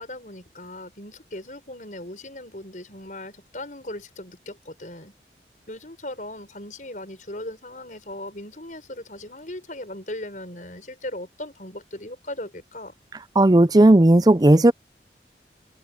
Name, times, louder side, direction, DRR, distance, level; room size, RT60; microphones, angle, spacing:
voice 1, 0.0-5.1 5.7-12.9, left 1 dB, 45° left, 6.1 m, -38 dB
voice 2, 13.4-14.7, right 1 dB, 20° right, 0.5 m, -14 dB
open air
head